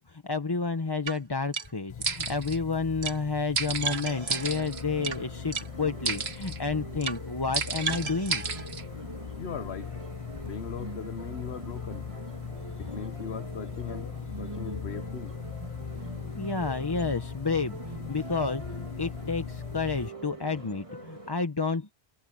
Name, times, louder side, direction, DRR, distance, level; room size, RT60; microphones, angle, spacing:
voice 1, 0.0-8.4 16.4-21.9, left 4 dB, 25° left, 0.9 m, -30 dB
sound 1, 1.1-1.2 1.5-1.7 2.0-2.6 3.0-3.2 3.6-5.2 5.5-5.7 6.1-6.6 7.0-7.2 7.5-8.8, right 5 dB, 85° right, 1.6 m, -31 dB
sound 2, 1.9-20.1, left 8 dB, 45° left, 0.4 m, -40 dB
sound 3, 4.0-21.3, right 2 dB, 30° right, 2.3 m, -43 dB
voice 2, 9.4-9.9 10.4-12.1 12.8-14.1 14.4-15.4, left 6 dB, 90° left, 1.3 m, -39 dB
omnidirectional pair, 1.0 m